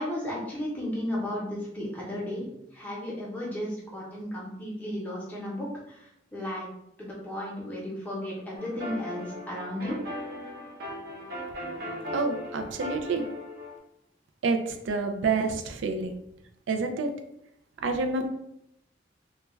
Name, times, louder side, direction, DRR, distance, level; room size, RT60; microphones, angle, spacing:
voice 1, 0.0-6.0 6.3-6.7 7.0-10.0, left 1 dB, 10° left, -6 dB, 0.7 m, -34 dB
sound 1, 8.6-13.8, left 1 dB, 55° right, 0.7 m, -38 dB
voice 2, 12.1-13.2 14.4-16.2 16.7-17.1 17.8-18.3, right 4 dB, 85° right, 5 dB, 0.4 m, -28 dB
2.2 x 2.2 x 3.0 m, 0.80 s
head